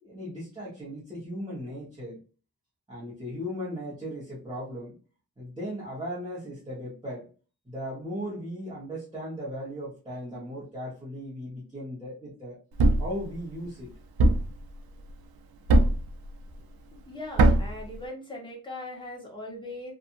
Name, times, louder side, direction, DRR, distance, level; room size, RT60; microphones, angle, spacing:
voice 1, 0.0-2.2 2.9-5.0 5.4-7.3 7.7-12.6 13.0-13.9, equal, 10° right, -8 dB, 0.9 m, -37 dB
Thump thud, 12.8-13.2 14.2-14.6 15.7-16.1 17.4-17.8, right 2 dB, 75° right, 0.5 m, -19 dB
voice 2, 17.1-19.9, left 1 dB, 15° left, -2 dB, 0.9 m, -39 dB
2.7 x 2.5 x 2.5 m, 0.36 s
wide cardioid pair, 170°, 36 cm